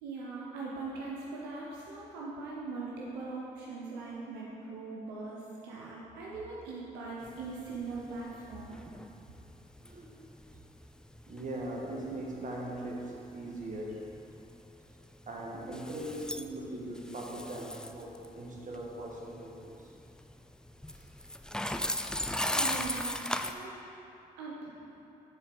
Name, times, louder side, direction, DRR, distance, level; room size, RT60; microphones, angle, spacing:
voice 1, 0.0-8.8 22.5-23.2 23.4-23.8 24.4-24.8, right 3 dB, 90° right, -4 dB, 0.7 m, -41 dB
sound 1, 7.2-23.5, left 1 dB, 5° left, 0.4 m, -39 dB
voice 2, 11.3-14.1 15.3-19.9 20.9-21.0, right 1 dB, 45° right, -2 dB, 1.5 m, -40 dB
6.7 x 4.5 x 5.1 m, 2.9 s
hypercardioid pair, 45°, 18 cm